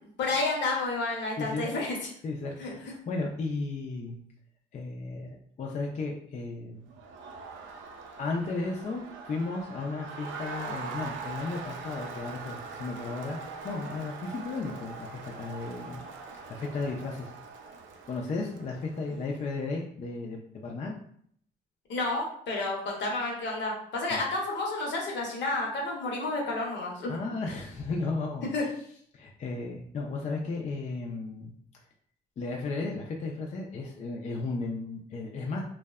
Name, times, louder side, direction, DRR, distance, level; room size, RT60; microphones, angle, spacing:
voice 1, 0.0-2.0 2.6-2.7 21.9-27.1 28.5-28.6, left 2 dB, 65° left, -1 dB, 0.7 m, -30 dB
voice 2, 1.4-1.7 2.2-4.2 4.7-6.8 8.2-13.4 13.6-16.0 16.5-17.3 18.1-20.9 24.1-24.2 27.1-28.5 29.1-31.5 32.4-35.6, left 3 dB, 40° left, -1 dB, 0.4 m, -34 dB
Crowd, 6.9-19.4, right 4 dB, 75° right, 0.4 m, -42 dB
2.6 x 2.1 x 2.3 m, 0.65 s
cardioid pair, 90°, 20 cm